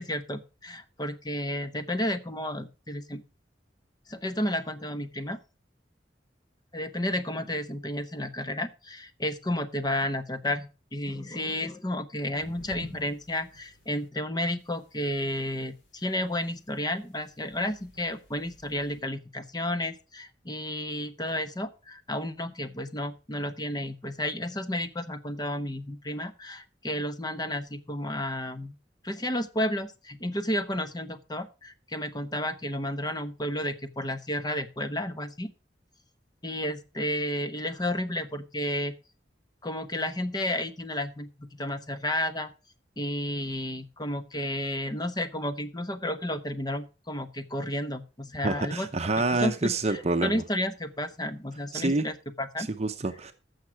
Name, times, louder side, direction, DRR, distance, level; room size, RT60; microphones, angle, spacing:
voice 1, 0.0-3.2 4.1-5.4 6.7-28.8 29.0-35.5 36.4-38.9 39.6-42.5 43.0-48.9 49.4-52.7, left 1 dB, 25° left, 0.9 m, -32 dB
sound 1, 12.4-14.1 14.6-19.0, equal, 90° left, 3.6 m, -51 dB
voice 2, 48.4-50.4 51.7-52.1 52.6-53.3, right 2 dB, 35° right, 0.8 m, -27 dB
15.0 x 6.6 x 4.6 m
head